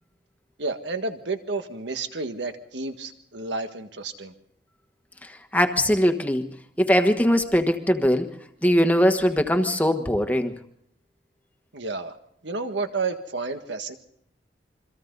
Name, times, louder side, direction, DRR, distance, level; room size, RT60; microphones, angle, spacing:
voice 1, 0.6-4.3 11.7-12.1 12.4-14.0, right 3 dB, 80° right, 7 dB, 1.7 m, -31 dB
voice 2, 5.2-6.5 6.8-8.3 8.6-10.5, equal, 10° left, 7 dB, 1.3 m, -21 dB
28.0 x 24.0 x 4.0 m, 0.69 s
head